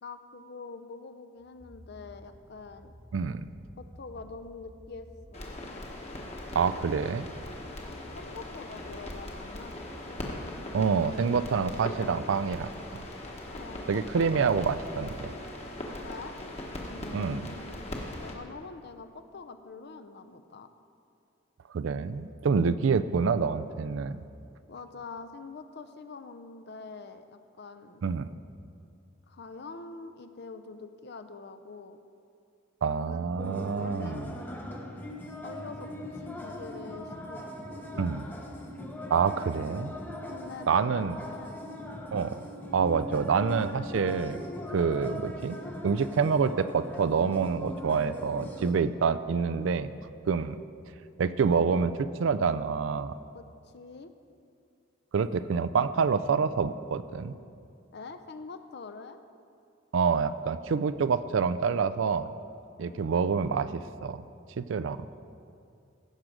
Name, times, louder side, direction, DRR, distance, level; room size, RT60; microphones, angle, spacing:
voice 1, 0.0-2.9 3.8-5.6 7.8-9.8 13.5-14.5 16.0-16.3 16.9-17.9 18.2-20.7 24.7-28.0 29.3-32.0 33.1-34.7 35.4-38.1 40.3-41.0 41.3-41.6 53.3-54.1 57.9-59.2 62.8-63.8, left 4 dB, 55° left, 10 dB, 0.5 m, -45 dB
sound 1, 1.4-17.0 17.8-17.9, equal, 25° right, 1.2 m, -53 dB
voice 2, 3.1-3.4 6.5-7.3 10.7-12.7 13.9-15.3 17.1-17.4 21.7-24.2 28.0-28.3 32.8-34.3 38.0-38.2 39.1-40.0 40.7-41.2 42.1-42.4 42.7-44.4 44.7-45.6 45.8-49.9 50.3-50.6 51.2-51.9 52.2-53.1 55.1-57.4 59.9-62.3 62.8-64.2 64.6-65.2, right 5 dB, 70° right, 14 dB, 0.4 m, -27 dB
sound 2, 5.3-18.3, left 1 dB, 30° left, 1.2 m, -40 dB
sound 3, 33.4-48.7, left 1 dB, 10° left, 0.7 m, -40 dB
15.5 x 6.2 x 5.1 m, 2.4 s
head